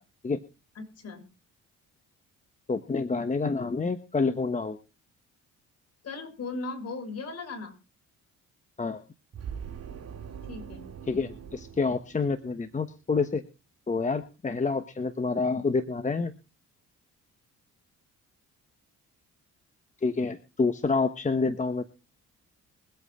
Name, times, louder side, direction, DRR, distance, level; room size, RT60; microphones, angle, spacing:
voice 1, 0.8-1.3 6.0-7.7 10.5-10.9, left 3 dB, 55° left, 4 dB, 5.9 m, -37 dB
voice 2, 2.7-4.8 8.8-9.0 11.1-13.4 13.9-16.3 20.0-21.8, left 4 dB, 25° left, 9 dB, 1.2 m, -28 dB
sound 1, 9.3-12.8, right 7 dB, 55° right, 2.2 m, -42 dB
23.0 x 8.5 x 3.7 m, 0.31 s
cardioid pair, 90°, 30 cm